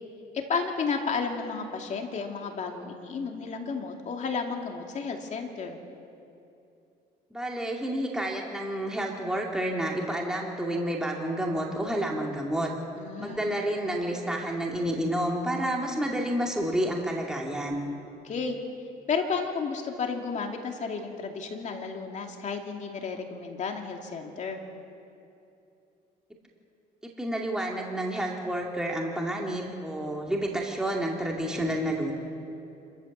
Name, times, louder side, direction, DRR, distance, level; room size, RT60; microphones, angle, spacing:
voice 1, 0.3-5.8 12.9-13.5 18.0-18.6 19.1-24.6, left 5 dB, 45° left, 3 dB, 2.5 m, -32 dB
voice 2, 7.3-12.7 13.2-17.8 27.0-32.1, right 1 dB, 5° right, -1 dB, 2.4 m, -30 dB
26.5 x 14.0 x 7.3 m, 2.7 s
cardioid pair, 110°, 17 cm